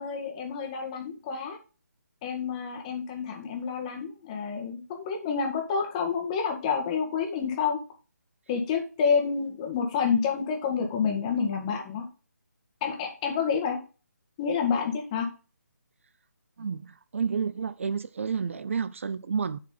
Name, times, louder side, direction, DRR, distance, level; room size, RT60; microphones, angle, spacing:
voice 1, 0.0-1.6 2.2-7.8 8.5-12.0 12.8-13.8 14.4-15.3, left 6 dB, 25° left, 1.9 m, -28 dB
voice 2, 16.6-19.6, right 6 dB, 50° right, 0.5 m, -30 dB
10.5 x 4.8 x 4.0 m
figure-of-eight pair, 155°, 9 cm